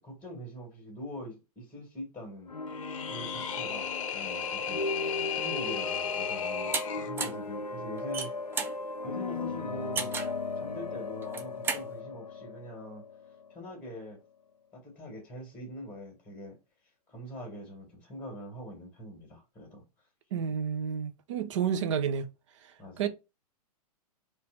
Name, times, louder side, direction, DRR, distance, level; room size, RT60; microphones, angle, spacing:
voice 1, 0.0-2.5 3.1-4.8 5.4-8.3 9.0-10.2 10.6-13.0 13.5-14.2 14.7-16.6 17.1-19.8 22.8-23.1, equal, 10° left, 1.8 m, -43 dB
sound 1, 2.5-14.1, left 3 dB, 90° left, 0.4 m, -37 dB
sound 2, 2.7-7.1, left 9 dB, 55° left, 0.7 m, -35 dB
sound 3, 6.7-6.8 7.2-7.5 8.0-8.8 10.0-10.4 11.2-11.9, right 5 dB, 10° right, 0.4 m, -33 dB
voice 2, 20.3-22.3 23.0-23.1, right 7 dB, 50° right, 0.7 m, -30 dB
4.1 x 2.6 x 4.7 m
figure-of-eight pair, 105°, 20 cm